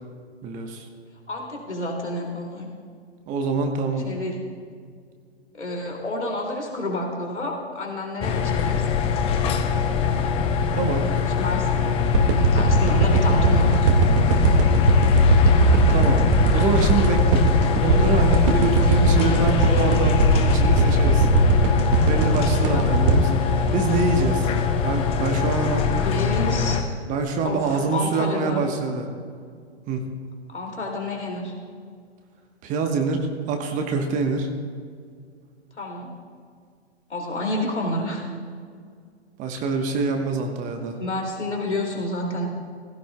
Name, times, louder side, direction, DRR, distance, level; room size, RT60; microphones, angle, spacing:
voice 1, 0.4-0.9 3.3-4.1 10.8-11.1 15.9-16.3 16.5-17.4 17.8-21.3 22.1-24.5 24.8-25.9 27.1-29.1 29.9-30.1 32.6-34.5 39.4-41.0, right 4 dB, 25° right, 5 dB, 1.2 m, -25 dB
voice 2, 1.3-2.7 3.9-4.3 5.5-8.8 11.1-12.0 12.5-13.8 22.7-23.0 25.9-26.8 27.4-28.6 30.5-31.5 35.8-36.1 37.1-38.2 41.0-42.5, left 1 dB, 85° left, -1 dB, 2.8 m, -29 dB
sound 1, 8.2-26.8, left 5 dB, 15° left, 0.7 m, -22 dB
sound 2, 12.1-24.5 24.9-25.0, right 2 dB, 50° right, 2.0 m, -20 dB
20.0 x 15.5 x 2.3 m, 2.1 s
figure-of-eight pair, 115°, 34 cm